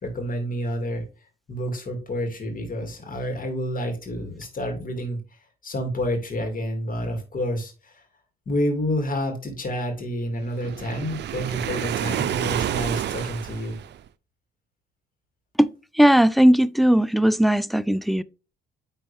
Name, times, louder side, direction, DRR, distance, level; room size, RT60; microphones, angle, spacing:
voice 1, 0.0-1.0 1.5-5.2 5.6-8.0 8.5-13.8, equal, 45° left, 2.9 m, -29 dB
Waves surf, 10.6-14.1, right 10 dB, 60° right, 0.5 m, -29 dB
voice 2, 15.9-18.2, equal, ahead, 0.3 m, -18 dB
9.8 x 4.1 x 3.5 m
cardioid pair, 90°, 20 cm